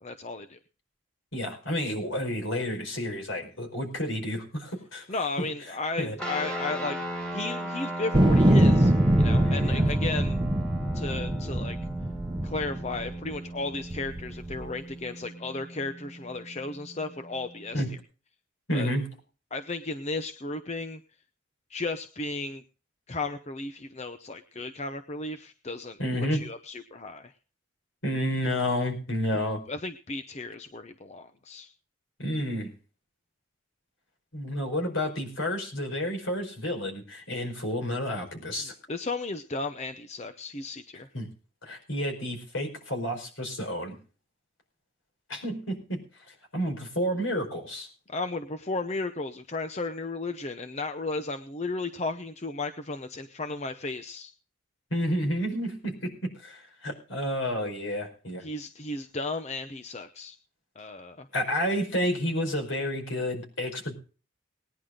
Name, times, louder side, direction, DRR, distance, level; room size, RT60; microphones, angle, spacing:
voice 1, 0.0-0.6 5.1-7.0 7.3-10.4 10.9-11.8 12.4-17.8 18.7-18.9 19.5-21.0 21.7-22.6 23.1-26.0 26.3-27.3 29.7-31.7 38.6-41.1 48.1-54.3 58.4-60.4 60.8-61.3, left 3 dB, 30° left, 9 dB, 0.7 m, -34 dB
voice 2, 1.3-5.1 5.4-5.5 6.0-6.2 9.4-10.0 17.7-17.9 18.7-19.1 26.0-26.4 28.0-29.6 32.2-32.7 34.3-38.7 41.1-41.3 41.6-44.0 45.3-46.0 46.3-47.9 54.9-58.4 61.3-63.9, equal, 70° left, 3 dB, 5.1 m, -30 dB
sound 1, 6.2-18.0, right 1 dB, 5° left, 1.8 m, -37 dB
sound 2, 8.1-13.4 13.9-14.7, right 1 dB, 20° right, 0.9 m, -23 dB
19.5 x 10.5 x 3.8 m, 0.37 s
head